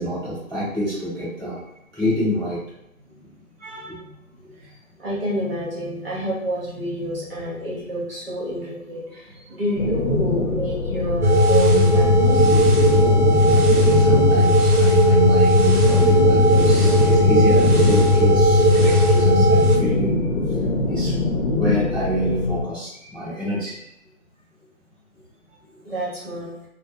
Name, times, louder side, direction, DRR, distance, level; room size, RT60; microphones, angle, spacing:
voice 1, 0.0-1.6 1.9-2.6 3.6-4.0 13.4-20.2 20.9-21.1 21.5-23.8, equal, 5° left, -24 dB, 0.8 m, -27 dB
voice 2, 3.7-12.9 13.2-13.3 25.8-26.5, equal, 40° right, -6 dB, 1.0 m, -29 dB
sound 1, 9.8-22.6, left 2 dB, 70° left, 0.7 m, -23 dB
sound 2, 11.2-19.8, equal, 90° right, 0.8 m, -16 dB
2.1 x 2.0 x 3.5 m, 0.82 s
figure-of-eight pair, 160°, 44 cm